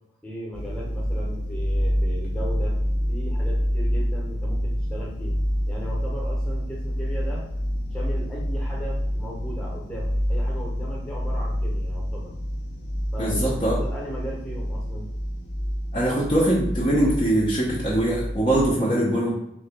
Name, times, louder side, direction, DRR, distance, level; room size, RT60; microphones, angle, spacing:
voice 1, 0.2-2.8 3.1-7.4 7.9-12.3 13.1-15.1, equal, 5° left, -4 dB, 1.0 m, -37 dB
sound 1, 0.5-18.7, equal, 60° left, 0.7 m, -27 dB
voice 2, 13.2-13.7 15.9-19.3, right 1 dB, 25° left, -5 dB, 0.7 m, -22 dB
4.0 x 2.9 x 3.4 m, 0.80 s
head